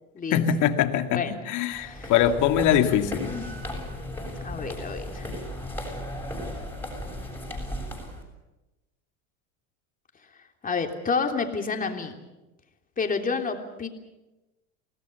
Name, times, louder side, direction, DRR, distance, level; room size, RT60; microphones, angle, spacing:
voice 1, 0.3-3.3, left 9 dB, 55° left, 7 dB, 2.3 m, -23 dB
voice 2, 1.7-2.1 3.2-3.5 4.4-5.4 10.6-12.2 13.0-13.9, left 5 dB, 20° left, 4 dB, 3.2 m, -29 dB
sound 1, 1.7-8.2, left 1 dB, 5° left, 7.2 m, -36 dB
28.5 x 18.5 x 7.0 m, 1.0 s
supercardioid pair, 120°, 36 cm